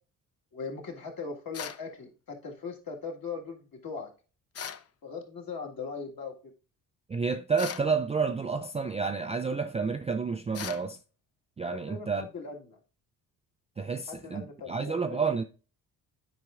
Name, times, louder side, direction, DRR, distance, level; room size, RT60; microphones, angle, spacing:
voice 1, 0.5-4.1 5.0-6.3 11.7-12.8 14.1-15.3, left 5 dB, 50° left, 1.8 m, -39 dB
sound 1, 1.5-1.9 4.5-4.9 7.6-7.9 10.5-10.9, left 8 dB, 35° left, 0.6 m, -38 dB
voice 2, 7.1-11.0 11.6-12.3 13.8-15.4, right 5 dB, 15° right, 0.3 m, -30 dB
9.3 x 4.7 x 2.4 m
hypercardioid pair, 50°, 46 cm